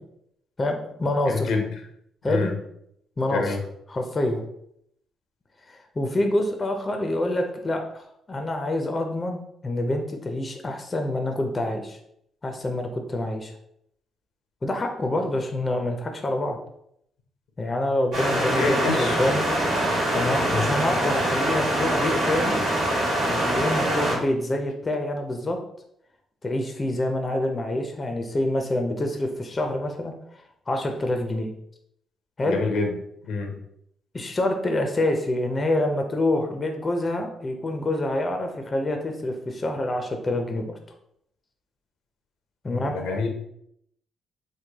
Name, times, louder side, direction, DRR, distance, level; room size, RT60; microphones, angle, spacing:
voice 1, 0.6-1.5 2.2-2.5 3.2-3.6 3.9-4.4 5.7-12.0 12.4-13.5 14.6-16.6 17.6-19.5 20.1-22.6 23.2-25.6 26.4-31.5 32.4-32.6 34.1-40.7 42.6-43.0, left 1 dB, 30° left, 4 dB, 0.5 m, -26 dB
voice 2, 1.3-1.7 2.2-2.5 3.3-3.6 18.6-19.2 20.5-20.7 32.5-32.9 33.3-33.5 42.7-43.3, left 4 dB, 85° left, 3 dB, 0.7 m, -26 dB
sound 1, 18.1-24.2, right 1 dB, 80° right, 1.3 m, -24 dB
3.2 x 2.2 x 3.4 m, 0.73 s
cardioid pair, 90°, 0 cm